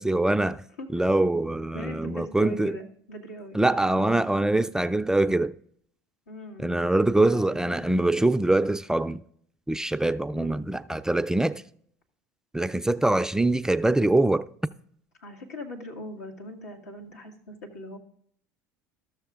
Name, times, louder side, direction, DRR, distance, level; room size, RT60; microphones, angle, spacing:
voice 1, 0.0-0.6 0.9-2.8 3.5-5.5 6.6-9.2 9.7-11.6 12.5-14.5, right 2 dB, 5° right, 0.3 m, -23 dB
voice 2, 1.7-3.6 6.3-6.9 7.2-7.9 10.3-10.6 15.2-18.0, equal, 85° left, 1.6 m, -41 dB
13.5 x 6.4 x 3.5 m
hypercardioid pair, 80°, 8 cm